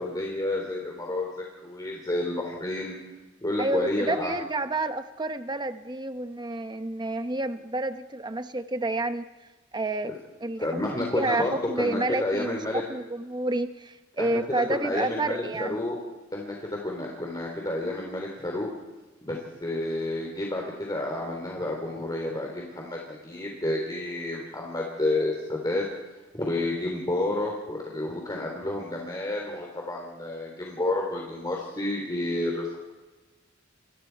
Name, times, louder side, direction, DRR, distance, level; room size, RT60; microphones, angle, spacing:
voice 1, 0.0-3.0 3.4-4.3 10.0-10.1 10.6-12.8 14.2-16.0 16.3-18.7 19.2-25.8 26.3-32.7, left 2 dB, 20° left, -1 dB, 3.3 m, -30 dB
voice 2, 3.6-9.3 9.7-10.1 10.4-10.8 11.1-15.8, right 2 dB, 20° right, 9 dB, 0.9 m, -29 dB
30.0 x 22.5 x 4.6 m, 1.2 s
head